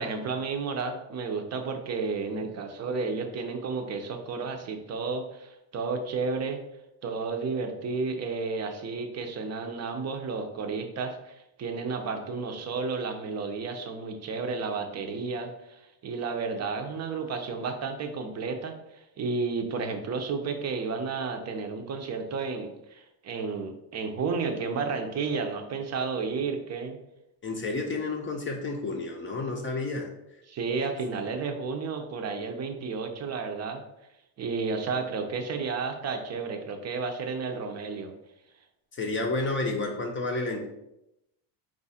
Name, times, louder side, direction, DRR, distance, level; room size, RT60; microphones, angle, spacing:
voice 1, 0.0-6.6 7.0-27.0 30.5-33.8 34.4-38.1, right 4 dB, 35° right, 5 dB, 0.6 m, -32 dB
voice 2, 27.4-30.1 38.9-40.7, left 3 dB, 25° left, 1 dB, 0.6 m, -30 dB
4.7 x 2.5 x 4.1 m, 0.88 s
cardioid pair, 115°, 49 cm